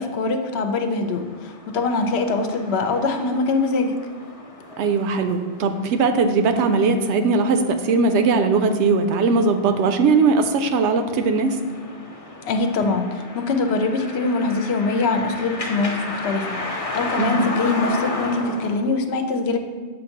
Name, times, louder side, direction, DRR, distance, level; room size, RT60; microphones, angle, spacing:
voice 1, 0.0-4.0 12.5-19.6, left 3 dB, 70° left, 6 dB, 0.8 m, -23 dB
sound 1, 1.0-18.7, left 2 dB, 35° left, 0.7 m, -34 dB
voice 2, 4.8-11.6 17.2-17.5, right 4 dB, 80° right, 8 dB, 0.9 m, -19 dB
7.1 x 2.6 x 5.7 m, 1.5 s
omnidirectional pair, 1.1 m